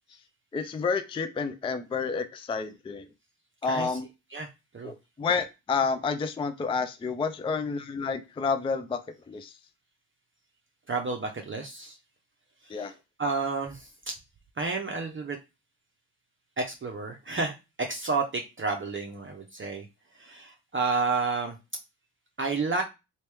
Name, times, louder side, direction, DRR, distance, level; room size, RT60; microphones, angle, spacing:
voice 1, 0.5-3.1 3.6-4.1 4.8-9.0 9.3-9.6 12.7-12.9, left 5 dB, 15° left, 9 dB, 0.4 m, -30 dB
voice 2, 10.9-12.0 13.2-14.1 14.6-15.4 16.6-17.5 17.9-19.8 20.2-21.6 22.4-22.8, right 4 dB, 25° right, 2 dB, 0.7 m, -30 dB
3.0 x 2.8 x 3.3 m, 0.25 s
supercardioid pair, 65°, 44 cm